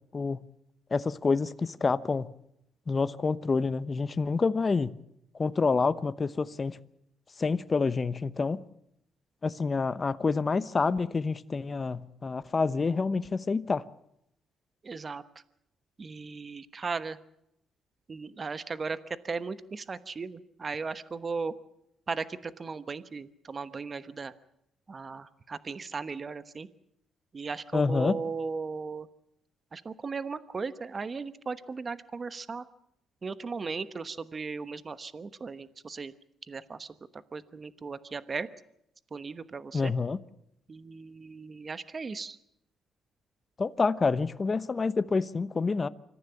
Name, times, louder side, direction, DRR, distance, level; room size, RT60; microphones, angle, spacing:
voice 1, 0.9-2.3 2.9-4.9 5.4-6.8 7.4-8.6 9.4-13.8 27.7-28.2 39.7-40.2 43.6-45.9, left 4 dB, 30° left, 1.0 m, -27 dB
voice 2, 14.8-15.4 16.0-17.2 18.1-21.5 22.1-24.3 24.9-26.7 27.3-29.1 29.7-32.6 33.2-36.1 36.5-38.5 39.1-39.9 40.7-42.4, right 4 dB, 35° right, 1.0 m, -37 dB
25.5 x 14.5 x 8.5 m
cardioid pair, 90°, 0 cm